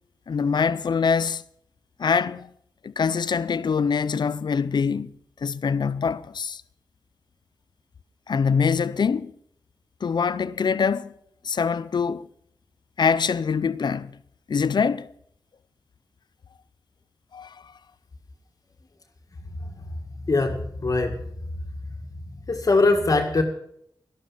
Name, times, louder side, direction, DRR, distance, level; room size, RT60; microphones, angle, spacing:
voice 1, 0.3-1.4 2.0-2.5 2.8-5.1 5.4-6.6 8.3-9.3 10.0-11.1 11.4-12.3 13.0-14.1 14.5-15.1 17.3-17.6, left 6 dB, 70° left, 0.5 m, -24 dB
voice 2, 19.5-21.2 22.1-23.4, left 3 dB, 50° left, 1.8 m, -23 dB
12.5 x 12.5 x 5.6 m
wide cardioid pair, 95°, 8 cm